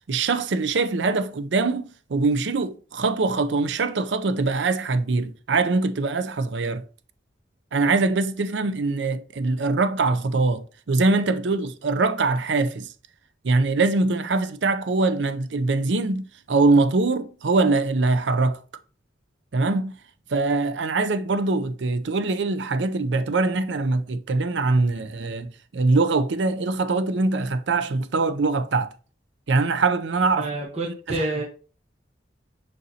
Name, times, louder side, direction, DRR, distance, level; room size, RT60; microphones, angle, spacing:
voice 1, 0.1-6.8 7.7-12.9 13.4-18.6 19.5-19.9 20.3-28.9 29.5-30.5, right 3 dB, 80° right, 0.6 m, -23 dB
voice 2, 30.3-31.4, right 2 dB, 35° right, 1.2 m, -28 dB
6.6 x 5.2 x 2.8 m
head